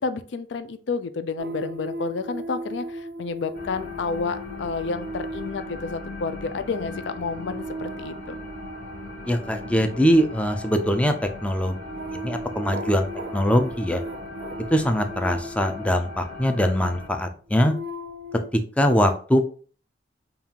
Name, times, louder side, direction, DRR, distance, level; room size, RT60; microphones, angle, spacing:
voice 1, 0.0-8.4, left 4 dB, 70° left, 11 dB, 0.4 m, -30 dB
sound 1, 1.4-16.5 17.1-18.5, right 1 dB, 60° right, 0.4 m, -37 dB
sound 2, 3.5-17.1, left 2 dB, 55° left, 1.1 m, -39 dB
voice 2, 9.3-11.1 11.4-11.8 12.1-14.0 14.7-17.7 18.8-19.4, equal, 5° left, 6 dB, 0.4 m, -22 dB
5.3 x 2.4 x 2.8 m, 0.42 s
head